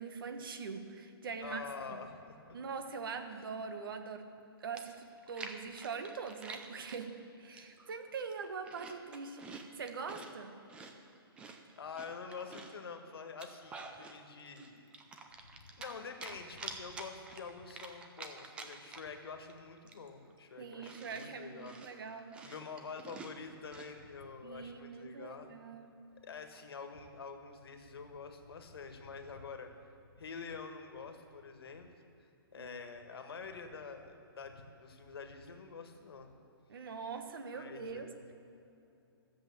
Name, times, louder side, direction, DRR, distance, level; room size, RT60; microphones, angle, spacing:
voice 1, 0.0-1.6 1.9-2.0 2.5-4.3 4.6-10.6 20.6-22.4 24.4-25.9 32.6-32.8 36.7-38.3, right 5 dB, 60° right, 7 dB, 1.3 m, -43 dB
voice 2, 1.4-2.6 3.3-3.4 11.8-14.9 15.4-25.5 26.2-29.7 30.1-31.9 32.5-36.3 37.5-38.3, left 5 dB, 70° left, 6 dB, 1.6 m, -47 dB
Chewing mastication, 4.4-4.5 4.8-7.0 7.6-7.9 8.3-10.3 10.7-12.8 13.2-14.2 14.5-15.9 16.2-19.2 19.5-19.6 19.9-23.9, right 4 dB, 10° right, 0.5 m, -49 dB
14.0 x 7.6 x 7.0 m, 2.7 s
hypercardioid pair, 160°, 13 cm